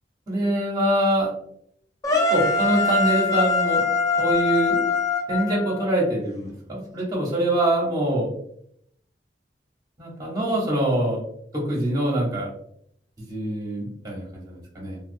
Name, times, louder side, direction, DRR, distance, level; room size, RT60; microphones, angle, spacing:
voice 1, 0.3-1.3 2.3-3.9 4.2-4.9 5.3-8.4 10.0-11.2 11.5-12.5 13.2-15.0, right 1 dB, 20° right, -3 dB, 0.8 m, -24 dB
sound 1, 2.0-6.1, left 4 dB, 20° left, 0.4 m, -23 dB
2.3 x 2.1 x 2.5 m, 0.69 s
head